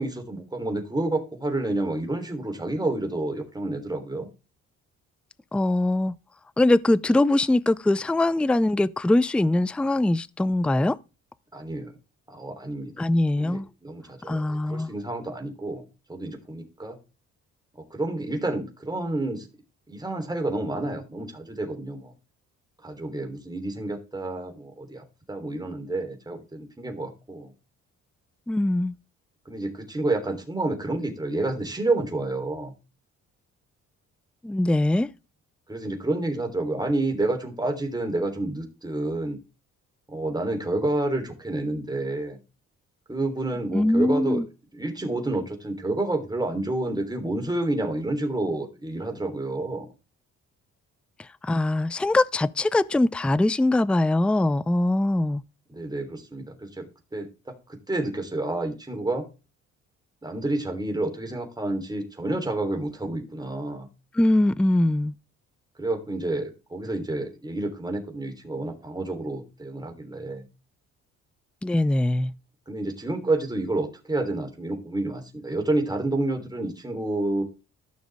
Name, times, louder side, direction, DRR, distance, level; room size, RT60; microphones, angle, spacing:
voice 1, 0.0-4.3 11.5-11.9 12.3-13.0 13.4-15.8 16.1-17.0 17.9-19.5 19.9-22.1 22.8-27.5 29.4-32.7 35.7-39.4 40.1-42.4 43.1-44.4 44.7-49.9 55.7-56.9 57.1-59.2 60.2-63.9 65.8-70.4 72.7-77.4, right 2 dB, 15° right, 3.4 m, -29 dB
voice 2, 5.5-6.2 6.6-11.0 13.0-13.7 14.3-14.9 28.5-29.0 34.4-35.1 43.7-44.5 51.2-55.4 64.1-65.1 71.6-72.3, left 1 dB, 5° left, 0.4 m, -22 dB
13.5 x 6.3 x 3.5 m
cardioid pair, 90°, 30 cm